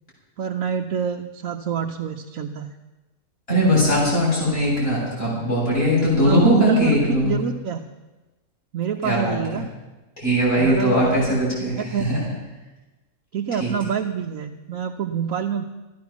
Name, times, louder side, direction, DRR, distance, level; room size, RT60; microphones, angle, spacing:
voice 1, 0.4-2.7 6.3-7.9 8.7-9.7 10.6-11.2 11.8-12.1 13.3-15.7, right 7 dB, 75° right, 3 dB, 1.2 m, -26 dB
voice 2, 3.5-7.4 9.0-9.4 10.2-12.2 13.6-13.7, equal, 40° left, -7 dB, 7.9 m, -20 dB
15.5 x 11.5 x 7.2 m, 1.1 s
omnidirectional pair, 1.5 m